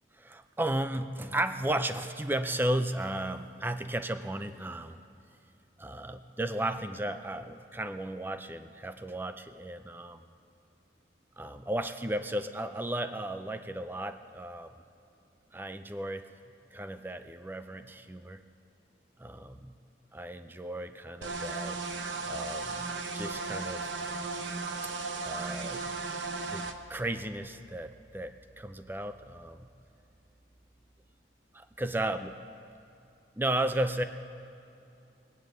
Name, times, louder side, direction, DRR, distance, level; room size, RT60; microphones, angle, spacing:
voice 1, 0.2-5.0 5.8-10.2 11.4-14.7 15.5-16.3 16.7-18.4 19.2-19.8 20.1-21.8 22.3-22.9 23.1-23.9 25.2-25.8 26.5-29.7 31.5-32.3 33.4-34.0, right 1 dB, 10° right, 10 dB, 0.4 m, -34 dB
sound 1, 21.2-26.7, right 3 dB, 85° right, 0.8 m, -35 dB
19.0 x 9.0 x 7.8 m, 2.6 s
head